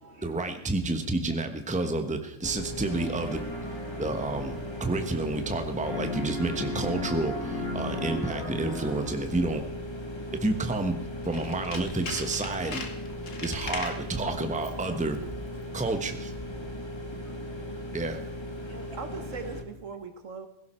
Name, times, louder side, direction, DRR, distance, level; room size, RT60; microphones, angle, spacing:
voice 1, 0.2-3.4 4.0-9.6 10.4-11.0 11.2-12.9 13.4-15.2 15.7-16.3 17.9-18.2, right 2 dB, 5° right, 7 dB, 1.1 m, -30 dB
sound 1, 2.4-19.6, left 1 dB, 20° left, 1.5 m, -38 dB
sound 2, 2.8-5.6 5.8-9.4, left 1 dB, 50° left, 4.9 m, -37 dB
Tools, 11.2-14.1 14.6-14.9 15.1-15.2, left 4 dB, 80° left, 2.0 m, -39 dB
voice 2, 16.6-18.0 18.6-19.0, right 2 dB, 55° right, 4 dB, 2.5 m, -52 dB
voice 3, 17.1-17.5 18.7-20.5, right 5 dB, 75° right, 7 dB, 1.7 m, -41 dB
17.0 x 16.0 x 4.4 m, 0.80 s
omnidirectional pair, 1.3 m